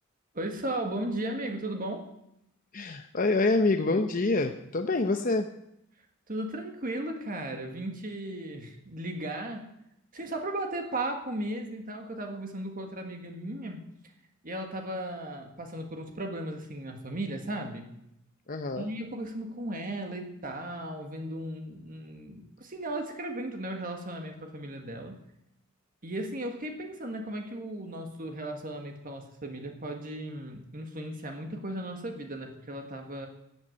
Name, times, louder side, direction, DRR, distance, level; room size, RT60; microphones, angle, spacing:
voice 1, 0.3-2.1 6.3-9.7 10.1-13.8 14.4-17.9 18.8-25.2 26.0-33.3, right 1 dB, 40° right, 3 dB, 1.7 m, -36 dB
voice 2, 2.7-5.5 18.5-18.9, left 3 dB, 40° left, 5 dB, 0.8 m, -26 dB
14.5 x 8.0 x 9.5 m, 0.81 s
head